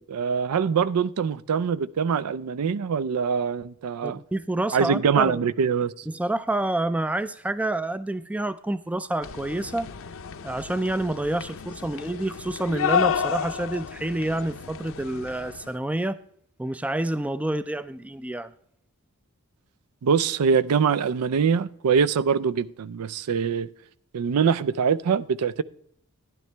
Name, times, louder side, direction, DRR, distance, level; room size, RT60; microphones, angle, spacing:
voice 1, 0.0-4.2 4.7-5.9 20.0-23.7 24.1-25.6, right 6 dB, 85° right, 0.4 m, -23 dB
voice 2, 4.0-5.4 6.1-9.9 10.4-16.2 16.6-18.5, right 1 dB, 5° right, 0.3 m, -28 dB
sound 1, 9.2-15.7, left 7 dB, 65° left, 0.6 m, -31 dB
12.0 x 10.5 x 3.3 m
head